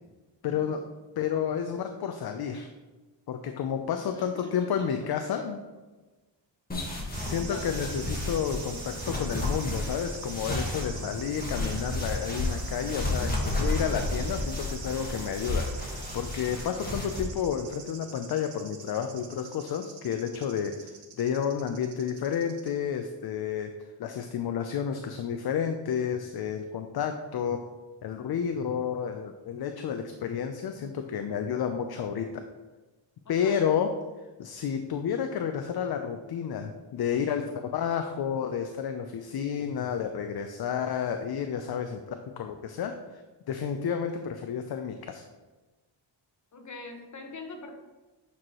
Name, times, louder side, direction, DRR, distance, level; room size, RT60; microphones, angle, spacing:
voice 1, 0.4-0.8 1.2-2.7 3.3-5.6 7.2-20.9 21.2-23.7 24.0-27.6 28.0-32.4 33.3-33.9 34.4-42.0 42.4-43.2 43.5-45.2, left 7 dB, 55° left, 6 dB, 0.6 m, -31 dB
voice 2, 4.0-4.9 7.3-7.7 33.2-33.6 46.5-47.7, left 3 dB, 40° left, 3 dB, 1.3 m, -44 dB
sound 1, 6.7-17.2, left 2 dB, 20° left, 1.6 m, -32 dB
sound 2, 7.1-22.7, right 6 dB, 80° right, 1.1 m, -44 dB
8.5 x 4.7 x 3.0 m, 1.2 s
cardioid pair, 105°, 46 cm